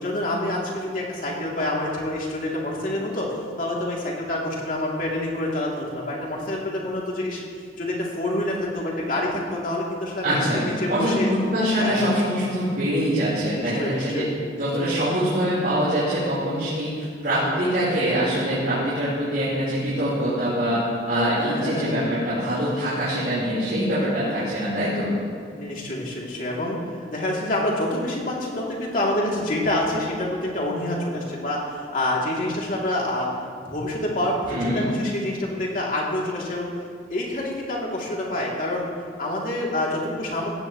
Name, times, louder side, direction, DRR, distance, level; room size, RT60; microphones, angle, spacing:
voice 1, 0.0-7.4 7.8-11.3 11.8-12.1 13.5-14.3 21.5-22.0 25.6-33.3 33.7-36.7 37.1-38.9 39.2-40.5, left 1 dB, 50° left, -3 dB, 2.9 m, -27 dB
voice 2, 10.2-10.6 10.9-14.3 14.5-20.8 21.1-25.1 34.5-34.9, equal, 55° right, -11 dB, 4.2 m, -24 dB
17.5 x 16.0 x 3.1 m, 2.1 s
head